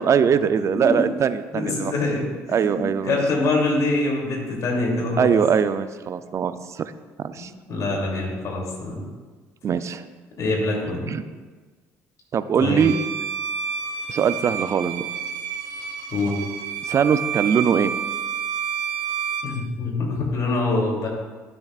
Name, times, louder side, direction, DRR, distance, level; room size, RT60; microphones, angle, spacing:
voice 1, 0.0-1.9 2.5-3.2 5.2-6.9 7.2-7.5 9.6-10.0 11.1-11.2 12.3-12.9 14.1-15.1 16.8-17.9, right 7 dB, 45° right, 12 dB, 0.5 m, -21 dB
voice 2, 0.7-1.0 1.5-5.3 7.4-9.0 10.4-11.1 12.6-12.9 16.1-16.3 19.4-21.1, left 2 dB, 55° left, -1 dB, 2.9 m, -25 dB
Bowed string instrument, 12.8-19.6, right 7 dB, 80° right, 0.8 m, -29 dB
13.0 x 7.0 x 2.5 m, 1.4 s
supercardioid pair, 70°, 7 cm